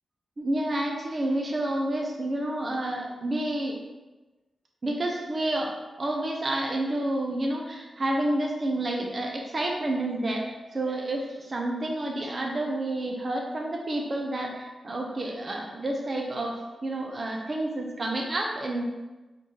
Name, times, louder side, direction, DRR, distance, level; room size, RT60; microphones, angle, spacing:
voice 1, 0.4-3.8 4.8-18.8, right 1 dB, 30° right, 0 dB, 0.4 m, -29 dB
4.2 x 3.1 x 2.8 m, 1.1 s
wide cardioid pair, 170°, 0 cm